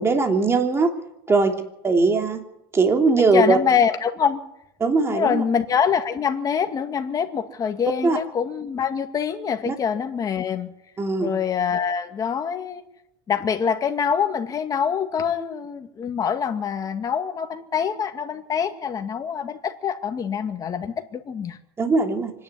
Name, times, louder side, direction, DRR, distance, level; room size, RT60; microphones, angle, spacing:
voice 1, 0.0-0.9 1.3-1.5 1.8-2.4 2.7-3.6 4.8-5.4 8.0-8.2 9.7-9.8 11.0-11.3 21.8-22.3, right 3 dB, 20° right, 4 dB, 3.1 m, -20 dB
voice 2, 3.2-4.4 5.1-10.7 11.2-12.8 13.3-21.6, left 7 dB, 30° left, 6 dB, 2.1 m, -25 dB
25.0 x 10.5 x 9.7 m, 0.83 s
supercardioid pair, 110°, 12 cm